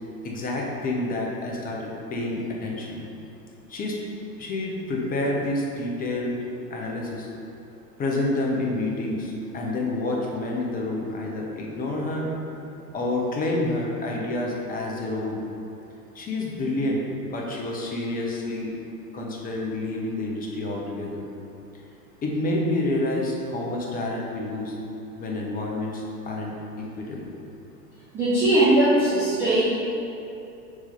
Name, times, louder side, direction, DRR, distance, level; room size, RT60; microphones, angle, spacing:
voice 1, 0.2-3.0 3.7-4.0 4.4-6.4 6.7-7.3 8.0-12.3 12.9-15.4 16.1-18.7 19.1-21.3 22.2-24.7 25.1-27.3, left 2 dB, 15° left, -2 dB, 0.8 m, -28 dB
voice 2, 28.1-29.6, right 1 dB, 5° right, -11 dB, 0.3 m, -19 dB
4.8 x 4.4 x 5.3 m, 2.8 s
figure-of-eight pair, 105°, 50 cm